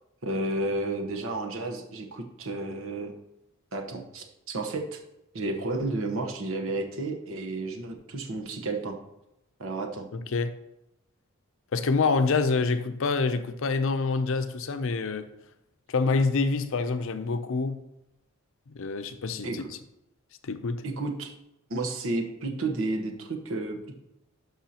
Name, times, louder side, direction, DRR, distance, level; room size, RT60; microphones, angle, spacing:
voice 1, 0.2-3.1 3.7-5.0 5.3-9.0 9.6-10.1 19.4-19.7 20.8-21.3 21.7-23.9, right 2 dB, 65° right, 1.2 m, -32 dB
voice 2, 10.1-10.5 11.7-15.3 15.9-17.8 18.7-19.6 20.4-20.8, left 4 dB, 65° left, 0.6 m, -26 dB
11.5 x 5.6 x 2.9 m
head